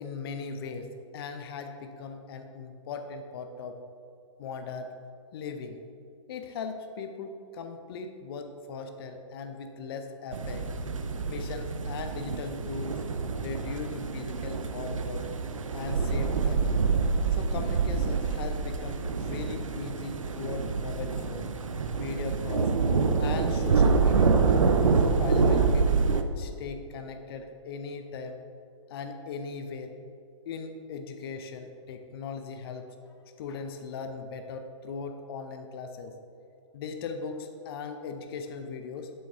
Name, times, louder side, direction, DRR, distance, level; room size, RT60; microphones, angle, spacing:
voice 1, 0.0-3.8 4.4-4.9 5.3-5.8 6.3-10.7 11.3-13.1 13.4-15.3 15.7-16.7 17.3-21.5 21.9-22.7 23.2-24.4 25.0-28.4 28.9-29.9 30.5-32.9 33.4-36.1 36.7-39.1, left 5 dB, 50° left, 6 dB, 0.7 m, -39 dB
sound 1, 10.3-26.2, right 4 dB, 80° right, 0.6 m, -26 dB
7.6 x 7.3 x 3.6 m, 2.4 s
hypercardioid pair, 125°, 16 cm